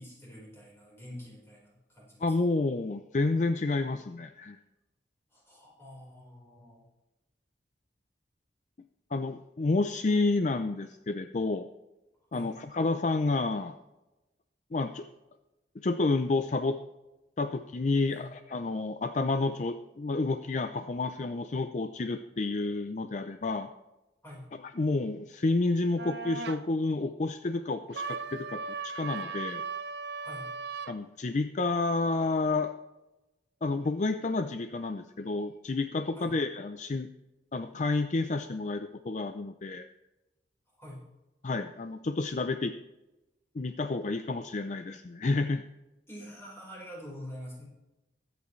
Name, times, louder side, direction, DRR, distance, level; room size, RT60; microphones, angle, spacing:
voice 1, 0.0-2.3 5.3-6.8 12.3-12.5 18.1-18.3 24.2-24.5 30.1-30.5 36.1-36.3 40.8-41.0 46.1-47.6, equal, 15° left, -4 dB, 4.4 m, -46 dB
voice 2, 2.2-4.6 9.1-11.7 12.3-13.8 14.7-15.1 15.8-16.8 17.4-23.7 24.8-29.6 30.9-32.7 33.6-37.1 37.5-39.9 41.4-42.7 43.5-45.6, left 3 dB, 45° left, 9 dB, 0.5 m, -30 dB
sound 1, 26.0-26.6 27.9-31.0, right 5 dB, 75° right, 0.7 m, -37 dB
21.5 x 8.2 x 3.2 m, 1.0 s
head